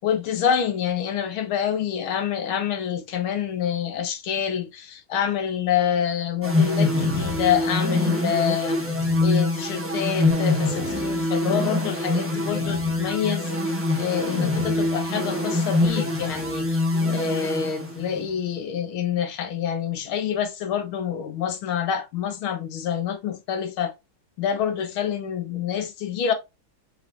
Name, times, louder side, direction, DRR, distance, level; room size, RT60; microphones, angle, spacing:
voice 1, 0.0-8.8 9.2-13.5 14.0-16.8 17.0-23.9 24.4-26.3, left 8 dB, 75° left, 1.6 m, -27 dB
sound 1, 6.4-18.3, left 2 dB, 10° right, 0.6 m, -24 dB
5.2 x 3.7 x 2.4 m
omnidirectional pair, 2.4 m